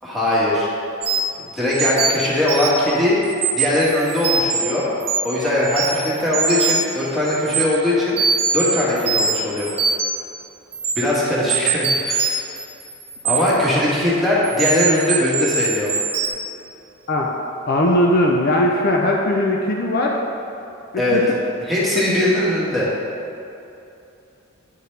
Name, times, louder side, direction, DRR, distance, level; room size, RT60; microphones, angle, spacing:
voice 1, 0.0-0.7 1.5-3.2 3.5-4.9 5.2-8.2 8.5-9.7 10.9-12.4 13.2-15.9 21.0-21.2 21.6-22.9, left 1 dB, ahead, -9 dB, 1.6 m, -20 dB
sound 1, 1.0-1.4 1.7-2.9 3.2-4.6 5.0-5.3 5.6-6.9 7.2-7.6 8.2-10.3 10.7-10.9 11.5-13.7 14.4-16.3, right 5 dB, 30° right, 1.1 m, -22 dB
voice 2, 17.7-20.2 20.9-21.2, left 1 dB, 50° left, -1 dB, 0.5 m, -19 dB
9.5 x 4.8 x 3.3 m, 2.7 s
head